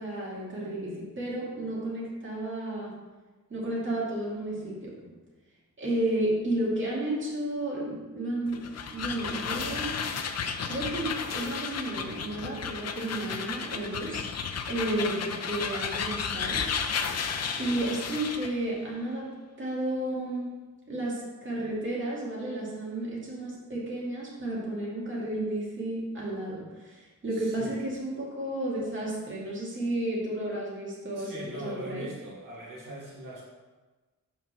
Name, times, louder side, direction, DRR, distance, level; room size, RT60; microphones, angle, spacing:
voice 1, 0.0-2.9 3.5-5.1 5.8-10.0 10.7-14.2 14.7-16.6 17.5-19.3 19.6-20.5 20.9-32.1, right 1 dB, 35° right, -6 dB, 2.3 m, -32 dB
sound 1, 8.5-18.6, left 6 dB, 50° left, 0.6 m, -33 dB
voice 2, 27.3-27.8 30.2-30.3 31.1-33.4, right 1 dB, 75° right, -5 dB, 1.6 m, -41 dB
5.9 x 4.3 x 6.1 m, 1.3 s
wide cardioid pair, 155°, 32 cm